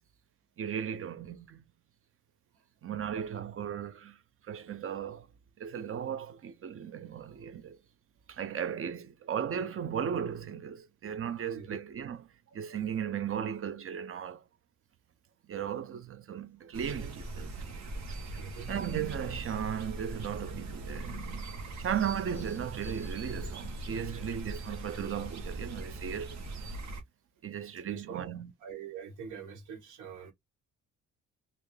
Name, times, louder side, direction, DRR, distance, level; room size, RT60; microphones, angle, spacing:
voice 1, 0.6-1.6 2.8-4.2 4.5-5.3 5.6-7.8 8.3-12.2 12.5-14.4 15.5-17.6 18.7-26.4 27.4-28.5, right 8 dB, 45° right, 0.7 m, -36 dB
sound 1, 16.7-27.0, right 2 dB, 65° right, 1.3 m, -40 dB
voice 2, 18.4-18.8 27.9-28.3 28.6-30.3, right 7 dB, 90° right, 1.6 m, -44 dB
3.3 x 2.7 x 3.2 m
cardioid pair, 90°, 30 cm